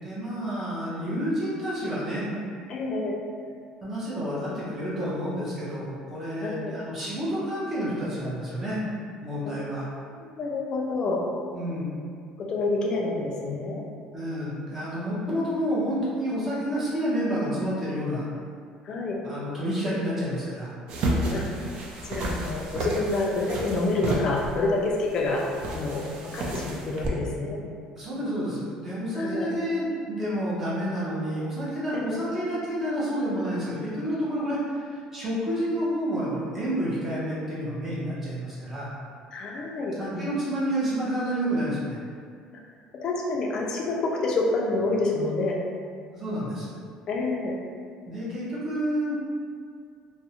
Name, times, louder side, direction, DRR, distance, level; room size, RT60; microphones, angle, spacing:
voice 1, 0.0-2.3 3.8-8.8 9.2-9.9 11.5-11.9 14.1-18.3 19.2-20.7 28.0-38.9 40.0-42.0 46.1-46.7 48.1-49.1, equal, 15° right, -9 dB, 0.6 m, -29 dB
voice 2, 2.7-3.2 6.4-6.7 9.5-9.6 10.2-11.2 12.4-13.8 18.8-19.2 21.3-21.5 22.1-25.5 25.7-27.6 29.2-29.5 31.9-32.1 39.3-40.2 43.0-45.6 47.1-47.6, left 2 dB, 35° left, -1 dB, 0.3 m, -28 dB
sound 1, 20.9-27.1, right 1 dB, 50° right, 0.3 m, -31 dB
2.4 x 2.0 x 2.8 m, 2.2 s
cardioid pair, 170°, 2 cm